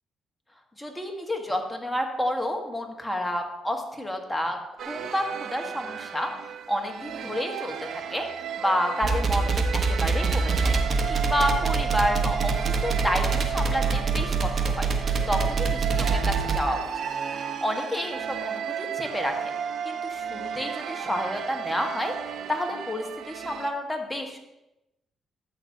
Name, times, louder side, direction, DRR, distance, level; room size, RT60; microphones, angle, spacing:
voice 1, 0.8-6.3 6.7-8.2 8.6-10.7 11.1-12.6 12.8-14.9 15.3-15.8 16.1-17.0 17.6-19.4 19.8-22.1 22.5-24.4, equal, 5° left, 2 dB, 1.5 m, -29 dB
sound 1, 4.8-23.7, right 8 dB, 70° right, 0.7 m, -34 dB
sound 2, 9.0-16.6, right 4 dB, 50° right, 1.2 m, -25 dB
12.5 x 7.9 x 2.8 m, 0.93 s
cardioid pair, 90°, 0 cm